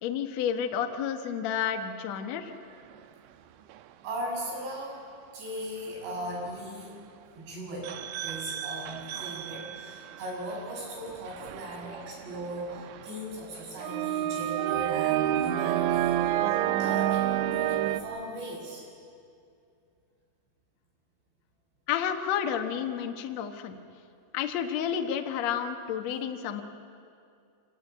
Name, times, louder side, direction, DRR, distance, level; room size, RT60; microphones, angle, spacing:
voice 1, 0.0-2.5 21.9-23.7 24.3-26.6, left 8 dB, 85° left, 6 dB, 1.5 m, -30 dB
sound 1, 3.7-3.8 7.8-10.3 10.8-13.1 13.8-18.0, right 12 dB, 90° right, 3.2 m, -29 dB
voice 2, 4.0-5.0 5.3-7.0 7.4-18.8, right 1 dB, 70° right, -3 dB, 9.0 m, -38 dB
27.5 x 18.5 x 9.1 m, 2.5 s
omnidirectional pair, 5.2 m